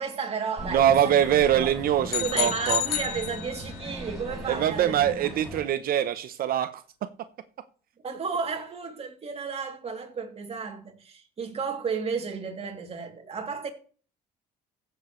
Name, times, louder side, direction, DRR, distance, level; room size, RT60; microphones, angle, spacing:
voice 1, 0.0-1.2 1.5-1.7 2.2-5.0 8.0-13.7, right 5 dB, 35° right, 2.7 m, -33 dB
sound 1, 0.6-5.6, equal, ahead, 4.9 m, -39 dB
voice 2, 0.7-2.8 4.5-7.1, right 10 dB, 60° right, 0.7 m, -23 dB
sound 2, 2.1-3.9, left 12 dB, 75° left, 1.1 m, -30 dB
15.0 x 7.1 x 3.1 m
cardioid pair, 110°, 17 cm